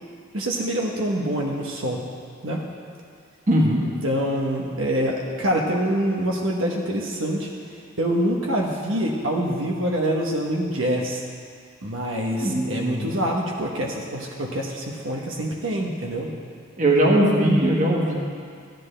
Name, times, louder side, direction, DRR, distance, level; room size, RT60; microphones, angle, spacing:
voice 1, 0.3-2.0 2.4-2.6 3.8-7.5 8.0-11.2 11.8-16.3, right 1 dB, 75° right, -1 dB, 1.1 m, -25 dB
voice 2, 3.5-3.8 12.4-13.1 16.8-18.1, right 1 dB, 40° right, -2 dB, 1.4 m, -20 dB
13.5 x 10.5 x 3.3 m, 2.2 s
head